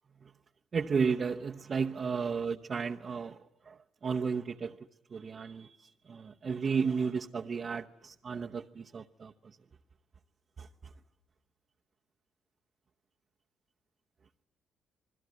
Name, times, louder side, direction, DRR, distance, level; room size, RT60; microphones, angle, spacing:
voice 1, 0.7-4.8 5.1-9.6 10.6-10.9, right 5 dB, 45° right, 0.9 m, -34 dB
27.5 x 20.5 x 9.4 m
cardioid pair, 90°, 0 cm